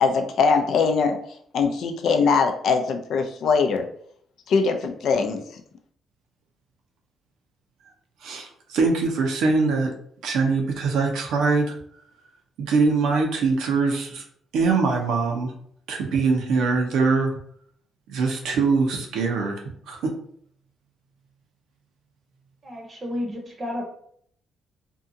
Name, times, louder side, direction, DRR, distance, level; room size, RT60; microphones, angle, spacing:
voice 1, 0.0-1.2 1.5-3.9 4.5-5.4, left 5 dB, 70° left, 6 dB, 0.4 m, -21 dB
voice 2, 8.2-9.9 10.2-11.7 12.6-14.2 14.5-15.5 15.9-17.3 18.1-19.6 19.9-20.1, right 4 dB, 85° right, 2 dB, 0.6 m, -22 dB
voice 3, 22.6-23.8, left 1 dB, 35° right, 0 dB, 0.8 m, -31 dB
2.7 x 2.3 x 2.6 m, 0.64 s
cardioid pair, 90°, 0 cm